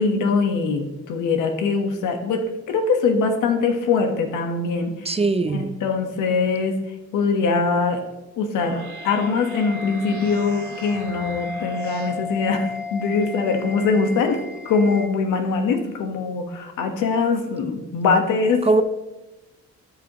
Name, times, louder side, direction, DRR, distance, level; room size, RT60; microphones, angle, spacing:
voice 1, 0.0-5.2 5.5-6.8 7.1-8.0 8.4-14.4 14.6-18.7, left 4 dB, 85° left, 4 dB, 1.4 m, -22 dB
voice 2, 5.0-5.8 18.6-18.8, right 3 dB, 20° right, 11 dB, 0.6 m, -20 dB
sound 1, 8.3-12.2, right 3 dB, 90° right, 2.3 m, -42 dB
sound 2, 8.6-15.1, left 3 dB, 5° right, 1.2 m, -35 dB
13.0 x 7.0 x 3.0 m, 1.0 s
cardioid pair, 90°, 30 cm